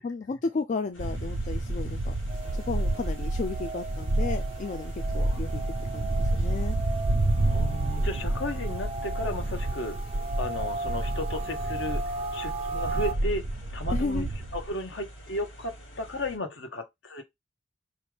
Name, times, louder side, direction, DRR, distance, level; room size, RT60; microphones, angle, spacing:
voice 1, 0.0-2.1 2.5-5.6 5.9-6.8 13.9-14.3, left 4 dB, 40° left, 0.4 m, -33 dB
sound 1, 0.9-16.4, equal, 90° left, 2.0 m, -48 dB
sound 2, 1.0-14.7, right 1 dB, 85° right, 0.8 m, -29 dB
sound 3, 2.3-13.1, right 3 dB, 30° right, 0.5 m, -37 dB
voice 2, 7.4-10.0 10.4-12.0 12.3-13.4 13.7-14.2 14.5-17.2, left 1 dB, 70° left, 1.2 m, -34 dB
5.5 x 2.4 x 3.4 m
head